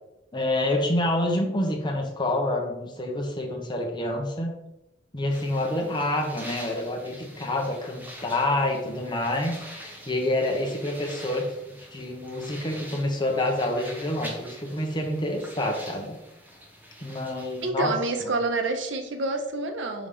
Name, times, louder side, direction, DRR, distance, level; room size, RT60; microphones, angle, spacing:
voice 1, 0.3-4.6 5.1-11.5 11.9-16.2 17.0-17.9, left 1 dB, 25° left, 1 dB, 1.2 m, -27 dB
sound 1, 5.3-17.7, equal, 10° right, 1.0 m, -45 dB
voice 2, 17.6-20.1, right 2 dB, 75° right, 5 dB, 0.7 m, -28 dB
5.0 x 4.0 x 5.3 m, 0.91 s
head